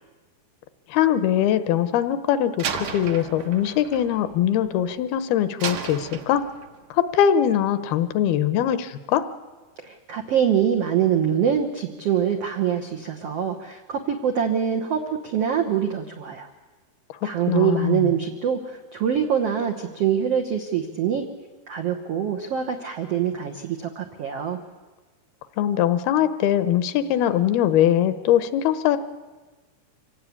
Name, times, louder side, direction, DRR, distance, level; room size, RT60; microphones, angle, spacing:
voice 1, 0.9-6.4 6.9-9.3 17.5-18.1 25.6-29.0, left 10 dB, 80° left, 12 dB, 2.6 m, -22 dB
Slam, 2.6-5.0 5.6-6.8, right 7 dB, 60° right, 1.9 m, -34 dB
voice 2, 9.8-16.5 17.2-21.3 21.7-24.6, right 8 dB, 75° right, 3 dB, 1.4 m, -24 dB
25.5 x 17.5 x 8.5 m, 1.3 s
omnidirectional pair, 4.5 m